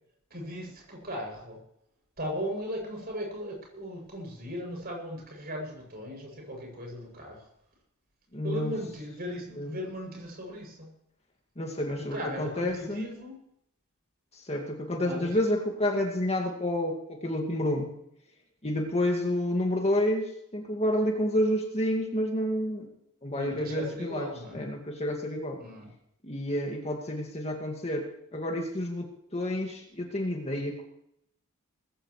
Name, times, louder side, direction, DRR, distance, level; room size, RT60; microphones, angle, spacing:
voice 1, 0.3-1.6 2.2-7.5 8.4-10.9 12.0-13.4 15.0-15.4 23.3-24.6 25.6-25.9, equal, 45° right, 0 dB, 7.6 m, -37 dB
voice 2, 8.3-8.7 9.6-9.8 11.6-13.1 14.3-17.9 18.6-22.9 23.2-25.6 26.2-28.1 28.3-30.8, left 1 dB, 30° left, 1 dB, 2.2 m, -29 dB
20.0 x 16.0 x 3.3 m, 0.76 s
head